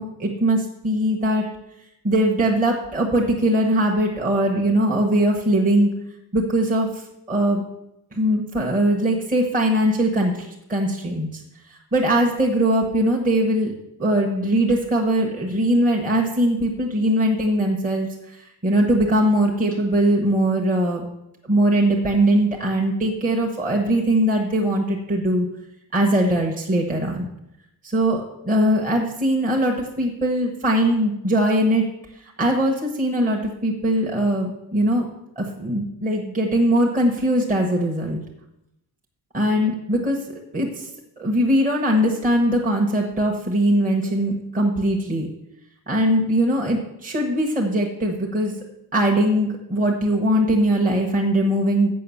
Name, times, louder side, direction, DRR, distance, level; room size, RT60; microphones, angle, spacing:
voice 1, 0.0-1.4 2.0-5.9 6.3-7.6 8.1-11.4 11.9-13.7 14.0-21.0 21.5-25.5 25.9-27.3 27.8-31.8 32.4-35.1 35.4-38.2 39.3-40.2 40.5-40.9 41.2-45.3 45.9-48.6 48.9-51.9, right 1 dB, 20° right, -1 dB, 1.1 m, -21 dB
7.7 x 5.8 x 7.0 m, 0.83 s
wide cardioid pair, 160°, 39 cm